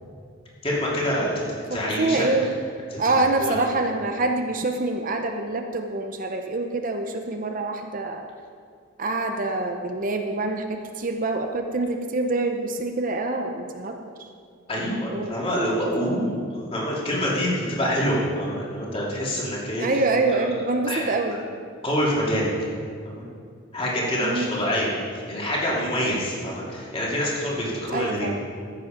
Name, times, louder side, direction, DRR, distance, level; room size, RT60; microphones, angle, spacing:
voice 1, 0.6-1.4 1.7-2.3 2.9-3.1 3.4-3.6 14.7-20.0 20.4-20.5 20.8-21.0 21.8-22.5 23.0-23.2 23.7-24.9 25.3-28.3, equal, 30° left, -5 dB, 2.7 m, -26 dB
voice 2, 1.7-2.5 3.0-8.3 9.0-14.1 15.1-15.4 19.8-21.4 24.2-24.5 27.9-28.4, right 2 dB, 45° right, 4 dB, 0.7 m, -26 dB
13.5 x 8.2 x 5.1 m, 2.2 s
head